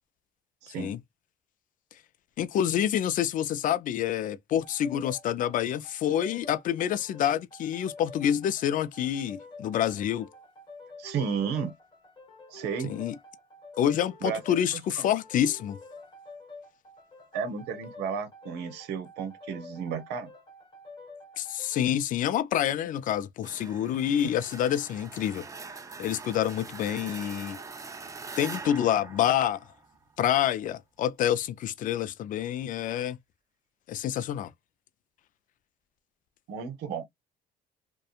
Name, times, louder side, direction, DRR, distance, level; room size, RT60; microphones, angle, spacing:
voice 1, 0.6-0.9 11.0-11.7 12.5-12.9 14.2-14.4 14.7-15.1 17.3-20.3 36.5-37.0, right 6 dB, 85° right, 0.9 m, -33 dB
voice 2, 2.4-10.3 12.8-13.2 13.8-15.8 21.4-25.5 26.0-27.6 28.4-29.6 30.2-33.2 33.9-34.5, left 10 dB, 50° left, 0.4 m, -27 dB
sound 1, 4.6-22.0, left 3 dB, 25° left, 0.9 m, -49 dB
sound 2, 23.4-30.1, right 4 dB, 20° right, 0.4 m, -43 dB
2.8 x 2.2 x 2.4 m
cardioid pair, 110°, 17 cm